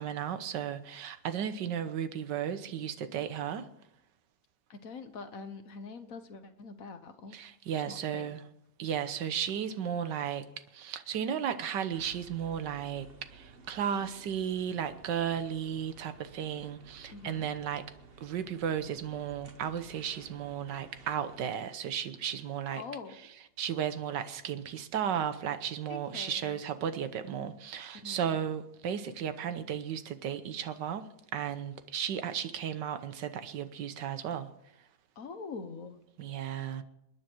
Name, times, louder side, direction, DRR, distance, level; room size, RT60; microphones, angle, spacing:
voice 1, 0.0-3.7 7.3-8.4 8.8-10.4 10.7-17.8 18.2-22.8 23.6-34.5 36.2-36.8, right 8 dB, 75° right, 1.6 m, -34 dB
voice 2, 4.7-7.4 7.9-8.3 17.1-17.5 22.8-23.2 25.9-26.6 28.0-28.4 35.2-36.0, left 4 dB, 55° left, 1.4 m, -44 dB
sound 1, 11.9-21.5, right 4 dB, 35° right, 1.2 m, -54 dB
28.0 x 9.7 x 4.6 m
omnidirectional pair, 2.0 m